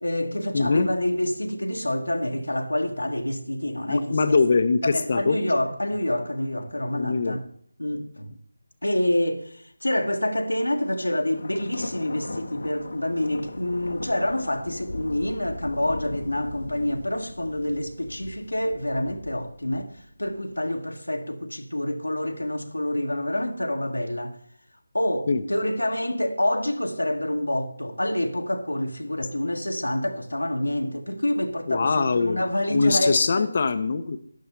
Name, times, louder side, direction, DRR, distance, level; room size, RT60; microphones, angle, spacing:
voice 1, 0.0-4.4 4.8-7.4 7.8-8.3 8.8-19.9 20.2-24.3 24.9-33.5, left 1 dB, 85° left, 1.6 m, -27 dB
voice 2, 0.5-0.9 3.9-5.4 6.9-7.4 25.3-25.4 31.7-32.4 32.7-34.2, left 4 dB, 40° left, 0.9 m, -22 dB
Thunder, 10.7-20.6, left 2 dB, 65° left, 1.1 m, -39 dB
13.5 x 11.0 x 3.4 m
figure-of-eight pair, 160°, 0 cm